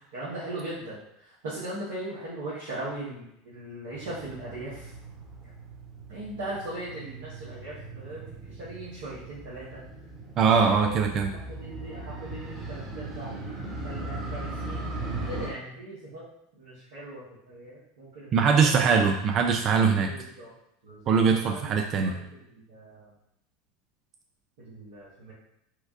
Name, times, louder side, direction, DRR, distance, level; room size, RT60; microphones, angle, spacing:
voice 1, 0.1-4.9 6.1-9.8 10.6-11.0 11.5-13.3 13.8-16.2 16.5-18.9 20.1-20.5 20.8-21.8 22.0-22.2 22.7-23.1 24.6-25.3, right 1 dB, 75° right, -11 dB, 1.1 m, -39 dB
Motorcycle, 3.9-15.5, right 2 dB, 20° right, 1.1 m, -39 dB
voice 2, 10.4-11.3 18.3-20.1 21.1-22.2, right 5 dB, 45° right, 4 dB, 0.3 m, -22 dB
4.5 x 2.2 x 2.5 m, 0.78 s
hypercardioid pair, 85°, 0 cm